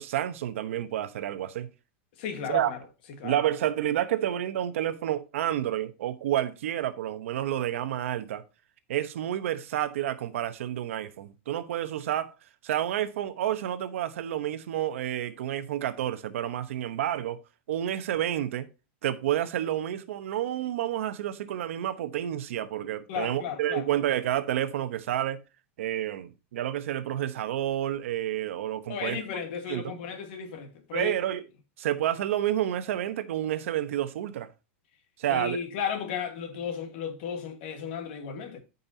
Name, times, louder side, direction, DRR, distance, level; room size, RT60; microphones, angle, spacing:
voice 1, 0.0-1.7 2.5-2.7 3.2-8.4 8.9-12.3 12.6-17.4 17.7-18.7 19.0-25.4 25.8-29.2 29.7-29.9 30.9-31.5 31.8-34.5 35.2-35.6, right 12 dB, 75° right, 1.0 m, -29 dB
voice 2, 2.2-2.8 3.2-3.4 23.1-23.9 28.9-31.1 35.3-38.6, left 7 dB, 50° left, 1.6 m, -34 dB
13.0 x 5.4 x 2.8 m
supercardioid pair, 175°, 7 cm